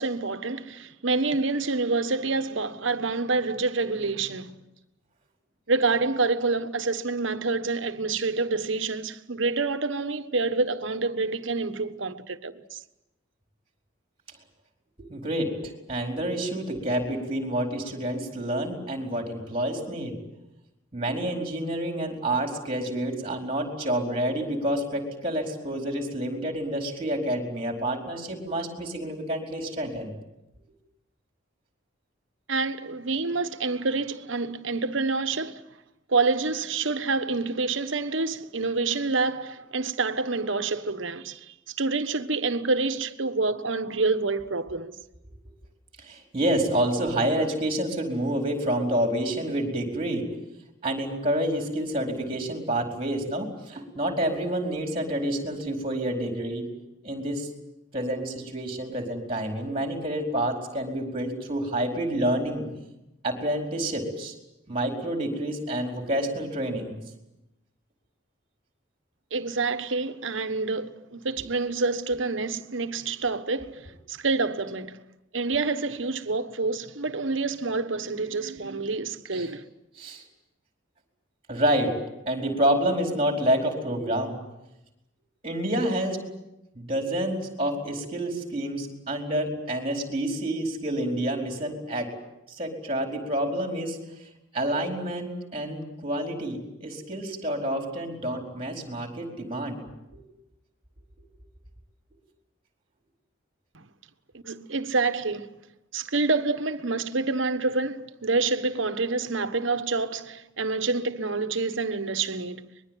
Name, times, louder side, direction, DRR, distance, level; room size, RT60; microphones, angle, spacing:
voice 1, 0.0-4.6 5.7-12.8 32.5-35.6 36.1-45.0 69.3-75.0 75.3-79.7 103.7-103.8 104.3-105.5 105.9-112.7, right 3 dB, 75° right, 1.3 m, -27 dB
voice 2, 15.0-15.5 15.9-20.2 20.9-30.2 46.0-50.3 50.8-56.7 57.0-57.5 57.9-62.7 63.2-64.3 64.7-66.9 79.3-79.5 80.0-80.2 81.5-82.0 82.3-84.4 85.4-86.2 86.7-92.1 92.5-94.0 94.5-99.8 100.1-100.2, right 1 dB, 30° right, 4.6 m, -28 dB
24.5 x 21.5 x 9.2 m
head